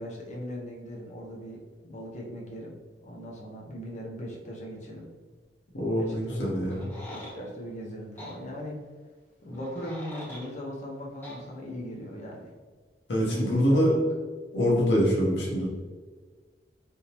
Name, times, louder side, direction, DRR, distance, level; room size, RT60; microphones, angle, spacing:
voice 1, 0.0-5.1 6.0-6.4 7.1-8.8 9.4-12.5 13.3-14.0, left 1 dB, 45° left, -2 dB, 0.7 m, -39 dB
voice 2, 5.7-6.9 13.1-13.9 14.5-15.7, equal, 75° left, -3 dB, 0.9 m, -24 dB
sound 1, 6.7-7.4 8.2-8.4 9.5-10.5 11.2-11.4, equal, 15° left, 1.1 m, -43 dB
3.5 x 2.7 x 2.9 m, 1.5 s
head